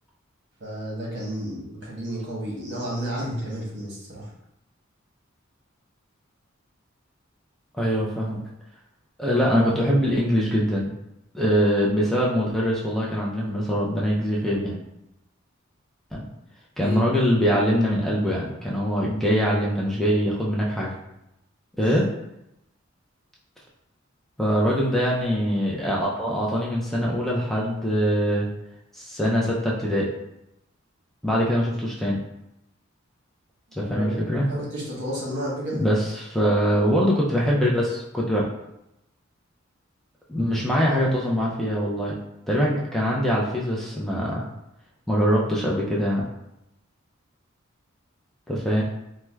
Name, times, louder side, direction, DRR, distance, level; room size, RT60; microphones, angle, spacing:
voice 1, 0.6-4.3 16.8-17.2 21.8-22.0 33.8-34.2 34.5-35.9, equal, 60° right, -4 dB, 1.0 m, -31 dB
voice 2, 7.7-8.4 9.2-10.9 11.3-14.8 16.1-16.3 16.8-20.9 21.7-22.0 24.4-28.5 28.9-30.1 31.2-32.2 33.8-34.5 35.7-38.5 40.3-42.1 42.5-44.4 45.1-46.2 48.5-48.8, equal, ahead, -5 dB, 0.4 m, -23 dB
4.5 x 2.0 x 2.2 m, 0.85 s
head